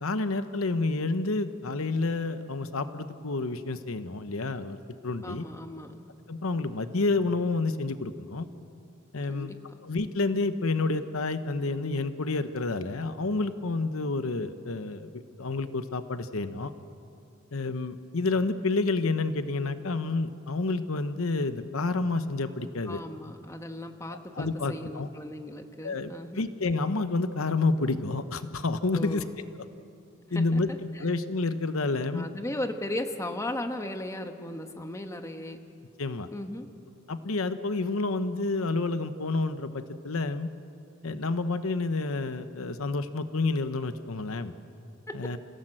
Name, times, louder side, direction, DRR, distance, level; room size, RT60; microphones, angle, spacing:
voice 1, 0.0-4.8 5.0-5.4 6.3-8.5 9.1-9.5 9.8-16.7 17.5-23.0 24.1-25.1 25.8-29.2 30.3-30.7 31.0-32.3 36.0-36.3 37.1-40.5 41.0-44.5 45.1-45.4, left 3 dB, 80° left, 10 dB, 0.9 m, -29 dB
voice 2, 5.2-6.0 9.3-9.8 22.9-26.5 28.9-29.3 30.3-30.6 30.9-31.1 32.1-35.6 36.3-36.7, left 1 dB, 15° left, 5 dB, 1.2 m, -36 dB
29.0 x 16.5 x 7.8 m, 2.7 s
head